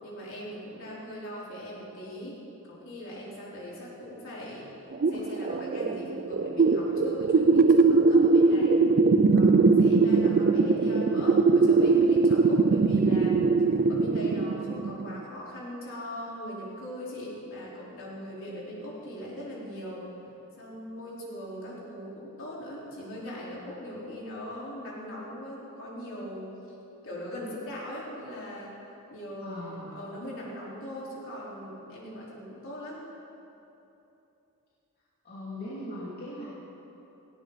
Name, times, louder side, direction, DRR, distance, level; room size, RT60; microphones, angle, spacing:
voice 1, 0.0-2.4 2.7-4.7 5.1-8.9 9.3-13.5 13.9-20.1 20.6-26.5 27.0-28.7 29.1-33.0, equal, 60° left, -6 dB, 4.5 m, -40 dB
sound 1, 4.9-15.2, right 4 dB, 40° right, 0.5 m, -21 dB
voice 2, 29.4-29.9 35.2-36.5, left 1 dB, 45° left, -9 dB, 2.8 m, -39 dB
18.0 x 16.5 x 4.2 m, 3.0 s
head